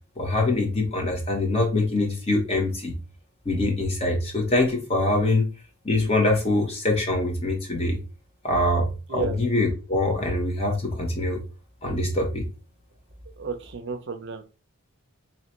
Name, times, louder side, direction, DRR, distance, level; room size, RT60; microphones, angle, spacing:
voice 1, 0.2-3.0 3.4-5.5 5.8-8.0 8.4-11.4 11.8-12.4, left 2 dB, 25° left, 1 dB, 1.1 m, -24 dB
voice 2, 13.4-14.4, right 5 dB, 55° right, 8 dB, 0.5 m, -32 dB
2.9 x 2.9 x 4.3 m, 0.32 s
head